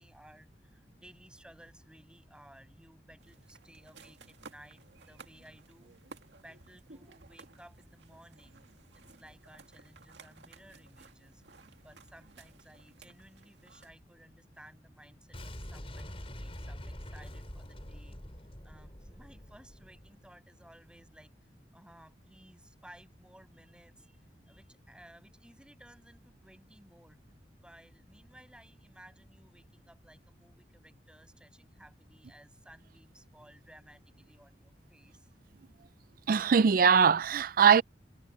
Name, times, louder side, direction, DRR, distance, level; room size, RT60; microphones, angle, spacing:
voice 1, 0.0-6.0 6.4-8.6 8.9-11.4 11.8-18.2 18.6-21.3 21.7-27.2 27.6-35.3, right 1 dB, 5° right, 6.0 m, -58 dB
sound 1, 3.2-13.9, right 4 dB, 90° right, 2.1 m, -56 dB
Boom, 15.3-20.3, equal, 35° left, 4.1 m, -45 dB
voice 2, 36.3-37.8, right 6 dB, 55° right, 0.4 m, -21 dB
head